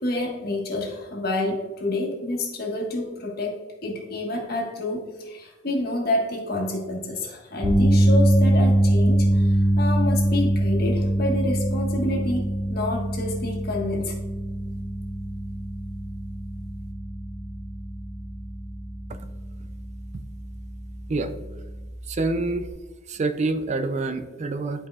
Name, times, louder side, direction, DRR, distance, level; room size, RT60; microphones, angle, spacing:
voice 1, 0.0-14.2, left 2 dB, 55° left, 0 dB, 1.4 m, -28 dB
sound 1, 7.6-19.9 20.2-20.5 22.7-22.8, right 1 dB, 10° right, 1.3 m, -23 dB
voice 2, 22.1-22.7 23.1-24.9, right 3 dB, 40° right, 9 dB, 0.4 m, -26 dB
11.5 x 4.7 x 2.4 m, 1.3 s
head